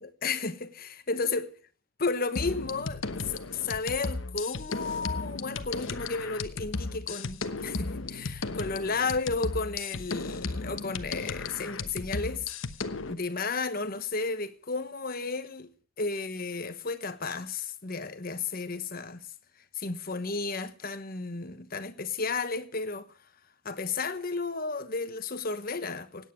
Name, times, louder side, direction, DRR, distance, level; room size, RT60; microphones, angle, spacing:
voice 1, 0.0-1.5 2.0-12.5 13.1-15.7 16.0-19.2 19.7-23.1 23.6-26.3, left 4 dB, 45° left, 1.2 m, -33 dB
sound 1, 2.4-13.1, left 3 dB, 70° left, 1.1 m, -35 dB
17.0 x 9.3 x 6.4 m
head